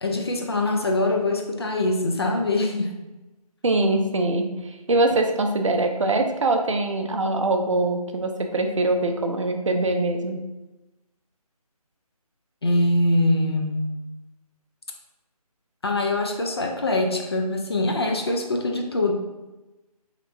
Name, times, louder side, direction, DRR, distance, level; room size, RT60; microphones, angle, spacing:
voice 1, 0.0-2.9 12.6-13.9 15.8-19.1, left 2 dB, 40° left, 2 dB, 0.4 m, -23 dB
voice 2, 3.6-10.4, right 2 dB, 55° right, 4 dB, 0.4 m, -23 dB
3.0 x 2.8 x 2.5 m, 1.1 s
figure-of-eight pair, 155°, 20 cm